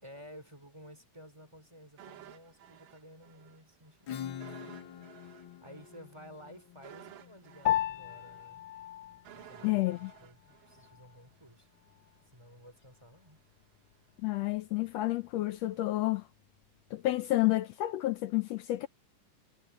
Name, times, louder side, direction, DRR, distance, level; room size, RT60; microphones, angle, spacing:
voice 1, 0.0-8.7 9.3-11.7 12.3-13.4, equal, 10° right, 3.8 m, -54 dB
sound 1, 2.0-3.6 3.9-4.0 4.4-11.5 11.8-11.9, right 11 dB, 85° right, 3.2 m, -54 dB
Acoustic guitar / Strum, 4.1-9.4, left 9 dB, 55° left, 1.5 m, -46 dB
Piano, 7.7-17.3, left 12 dB, 75° left, 1.7 m, -39 dB
voice 2, 9.6-10.1 14.2-16.3 16.9-18.9, left 17 dB, 90° left, 1.4 m, -30 dB
omnidirectional pair, 3.8 m